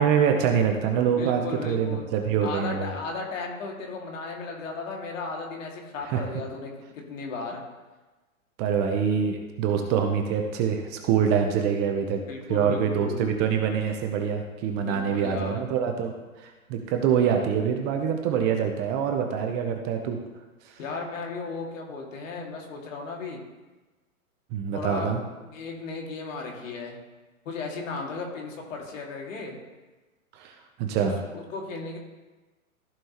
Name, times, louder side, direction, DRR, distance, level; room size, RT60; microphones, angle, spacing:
voice 1, 0.0-2.9 6.1-6.2 8.6-12.2 12.5-16.1 16.4-20.2 20.7-20.8 24.5-25.2 30.4-30.5 30.8-31.2, right 7 dB, 25° right, 4 dB, 0.7 m, -25 dB
voice 2, 1.1-2.1 2.4-7.6 12.3-13.5 14.8-15.6 20.8-23.4 24.7-25.1 25.4-27.0 27.5-29.6 31.0-32.0, left 4 dB, 65° left, 0 dB, 2.3 m, -35 dB
14.5 x 5.3 x 3.0 m, 1.2 s
hypercardioid pair, 130°, 43 cm